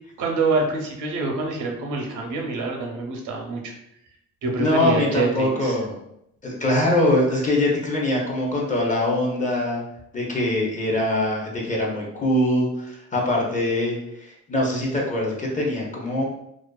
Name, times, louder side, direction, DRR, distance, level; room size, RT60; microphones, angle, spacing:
voice 1, 0.2-3.7 4.4-5.8, right 3 dB, 80° right, 1 dB, 0.6 m, -26 dB
voice 2, 4.6-6.0 6.4-9.8 10.1-16.2, left 1 dB, 25° left, -2 dB, 0.5 m, -23 dB
2.4 x 2.3 x 2.2 m, 0.77 s
cardioid pair, 125°, 30 cm